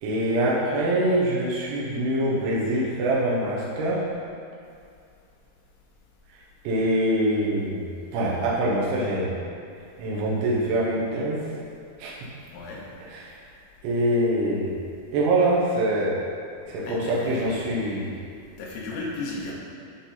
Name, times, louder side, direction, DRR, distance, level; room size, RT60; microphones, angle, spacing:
voice 1, 0.0-4.0 6.7-7.9 8.1-9.3 10.0-11.5 12.0-12.2 13.2-13.3 13.8-14.8 15.1-16.2 16.7-18.1, right 1 dB, 85° right, -6 dB, 3.6 m, -24 dB
voice 2, 12.5-12.8 16.8-17.9 18.6-19.5, left 2 dB, 85° left, -4 dB, 3.5 m, -34 dB
12.5 x 4.2 x 3.9 m, 2.5 s
omnidirectional pair, 5.2 m